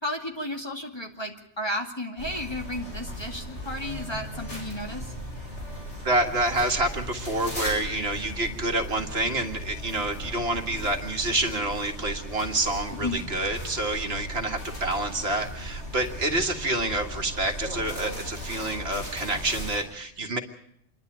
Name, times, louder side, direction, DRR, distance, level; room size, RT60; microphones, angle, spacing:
voice 1, 0.0-5.1 13.0-13.2, left 1 dB, 20° left, 2 dB, 2.4 m, -33 dB
sound 1, 2.2-19.8, equal, 90° left, 6.9 m, -37 dB
voice 2, 6.0-20.4, right 2 dB, 65° right, 4 dB, 2.1 m, -28 dB
27.5 x 11.5 x 9.2 m, 0.71 s
omnidirectional pair, 1.2 m